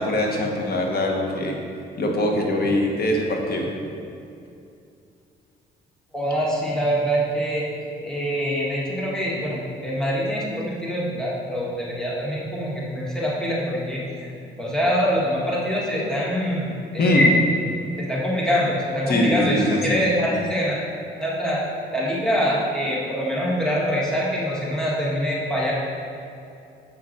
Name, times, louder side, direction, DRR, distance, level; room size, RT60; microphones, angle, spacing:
voice 1, 0.0-1.6 2.0-3.7 17.0-17.2 19.1-20.0, left 1 dB, 50° left, 0 dB, 1.4 m, -22 dB
voice 2, 6.1-7.7 8.0-14.3 14.6-17.3 18.0-20.8 21.2-21.6 21.9-25.7, equal, 5° left, -6 dB, 1.7 m, -24 dB
7.1 x 6.1 x 4.4 m, 2.6 s
cardioid pair, 90°, 20 cm